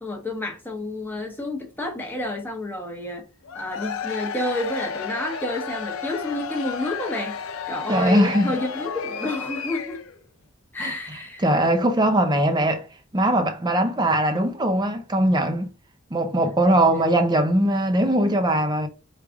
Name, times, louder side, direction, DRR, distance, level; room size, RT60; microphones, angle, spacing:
voice 1, 0.0-3.2 3.5-7.4 7.7-10.0 10.7-11.5, left 1 dB, 10° left, 1.0 m, -30 dB
Cheering / Crowd, 3.4-10.2, left 6 dB, 85° left, 0.6 m, -32 dB
voice 2, 7.9-8.5 10.8-10.9 11.4-12.8 13.1-15.7 16.1-18.9, right 1 dB, 20° right, 0.6 m, -20 dB
4.7 x 2.4 x 3.4 m
head